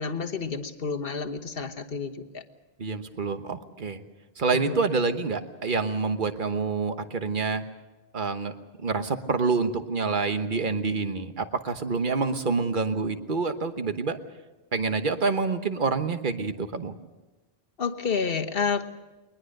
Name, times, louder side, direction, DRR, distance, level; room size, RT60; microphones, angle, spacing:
voice 1, 0.0-2.4 4.5-4.7 17.8-18.9, left 5 dB, 65° left, 6 dB, 1.4 m, -30 dB
voice 2, 2.8-4.0 4.4-7.6 8.1-8.5 8.8-14.2 14.7-17.0, right 4 dB, 50° right, 9 dB, 1.3 m, -27 dB
22.0 x 20.5 x 6.6 m, 1.2 s
omnidirectional pair, 1.1 m